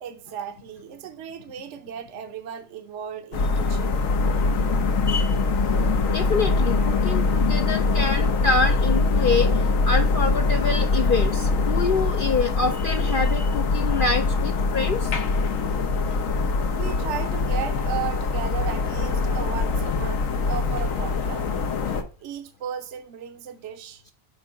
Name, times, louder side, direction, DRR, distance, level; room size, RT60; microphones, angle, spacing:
voice 1, 0.0-4.0 5.8-5.9 16.6-21.5 22.2-24.0, right 9 dB, 65° right, 1.0 m, -35 dB
sound 1, 3.3-22.0, left 3 dB, 85° left, 1.3 m, -23 dB
voice 2, 6.1-15.1, left 4 dB, 55° left, 0.6 m, -26 dB
6.8 x 3.6 x 5.3 m
omnidirectional pair, 1.3 m